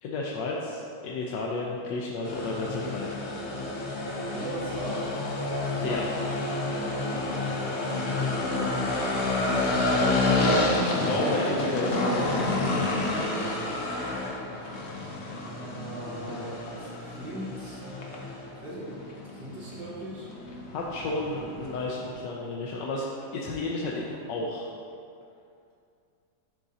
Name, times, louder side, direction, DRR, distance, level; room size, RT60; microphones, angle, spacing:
voice 1, 0.0-3.2 5.8-6.0 10.4-13.0 20.7-23.0 23.3-24.7, left 2 dB, 80° left, -3 dB, 1.3 m, -32 dB
sound 1, 2.2-22.1, left 2 dB, 55° left, 0.8 m, -29 dB
voice 2, 4.1-5.1 7.6-9.0 15.4-17.8 18.6-19.0 19.3-20.3, right 2 dB, 75° right, -8 dB, 1.8 m, -39 dB
10.5 x 3.7 x 2.7 m, 2.4 s
omnidirectional pair, 1.9 m